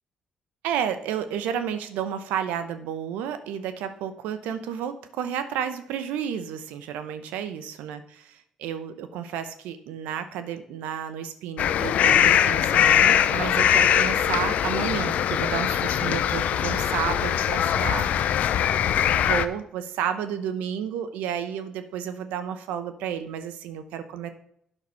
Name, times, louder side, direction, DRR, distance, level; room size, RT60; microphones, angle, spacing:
voice 1, 0.6-18.4 19.1-24.3, right 9 dB, 85° right, 10 dB, 0.8 m, -31 dB
sound 1, 11.6-19.5, left 9 dB, 70° left, 0.5 m, -22 dB
9.0 x 6.1 x 5.4 m, 0.70 s
supercardioid pair, 60°, 3 cm